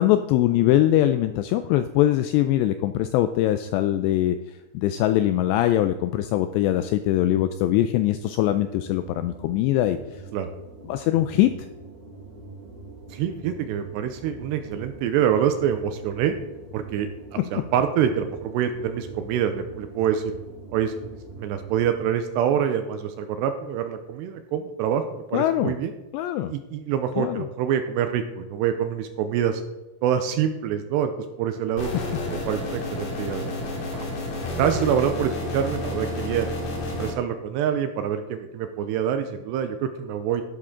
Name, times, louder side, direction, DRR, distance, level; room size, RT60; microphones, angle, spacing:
voice 1, 0.0-4.4 4.7-10.0 10.9-11.5 17.4-17.6 25.3-25.7 26.1-26.5 27.2-27.4, left 13 dB, 85° left, 10 dB, 2.5 m, -22 dB
sound 1, 8.5-22.2, right 3 dB, 20° right, 1.2 m, -43 dB
voice 2, 13.1-16.3 16.7-20.3 20.7-20.9 21.4-25.9 26.5-29.6 30.0-31.1 31.4-31.9 32.3-34.1 34.5-36.5 36.8-40.4, right 9 dB, 80° right, 8 dB, 2.6 m, -26 dB
sound 2, 31.8-37.1, left 2 dB, 50° left, 3.4 m, -30 dB
12.0 x 11.5 x 3.7 m, 1.1 s
omnidirectional pair, 5.4 m